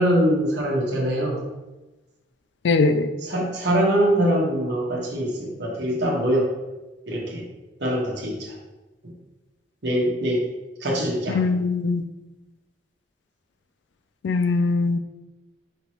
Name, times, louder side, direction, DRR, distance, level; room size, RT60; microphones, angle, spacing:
voice 1, 0.0-1.4 3.2-6.5 7.1-7.4 7.8-8.5 9.8-10.4 10.8-11.4, equal, 65° right, -2 dB, 1.1 m, -23 dB
voice 2, 2.6-3.1 11.3-12.0 14.2-15.0, left 3 dB, 65° left, 10 dB, 0.3 m, -21 dB
5.2 x 2.9 x 2.9 m, 1.1 s
head